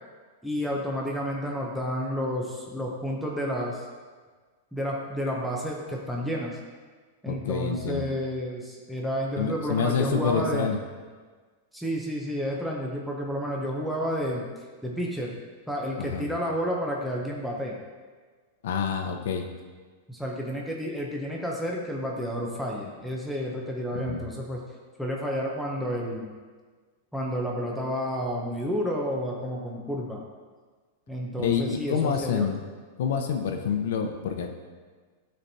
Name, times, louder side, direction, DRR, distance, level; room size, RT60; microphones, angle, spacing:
voice 1, 0.4-3.9 4.7-6.6 7.2-10.7 11.7-14.5 14.8-15.3 15.7-17.8 20.1-24.6 25.0-26.3 27.1-30.2 31.1-32.5, equal, ahead, -3 dB, 0.7 m, -30 dB
voice 2, 7.3-8.1 9.4-10.8 16.0-16.3 18.6-19.5 23.9-24.3 31.4-32.6 33.0-34.6, left 6 dB, 75° left, 5 dB, 0.7 m, -27 dB
12.0 x 4.4 x 2.8 m, 1.5 s
supercardioid pair, 160°, 0 cm